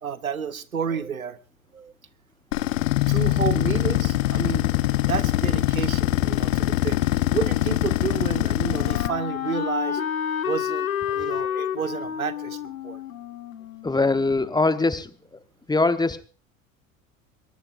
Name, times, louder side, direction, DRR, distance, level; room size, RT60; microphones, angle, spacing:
voice 1, 0.0-1.4 1.7-1.9 3.1-10.0 10.4-13.0, right 7 dB, 90° right, 16 dB, 1.0 m, -31 dB
sound 1, 2.5-9.1, left 16 dB, 65° left, 1.1 m, -23 dB
Wind instrument woodwind instrument, 7.7-14.6, left 9 dB, 80° left, 1.4 m, -31 dB
voice 2, 13.8-15.1 15.7-16.2, left 3 dB, 10° left, 12 dB, 1.2 m, -22 dB
22.0 x 21.0 x 2.6 m, 0.37 s
figure-of-eight pair, 75°, 41 cm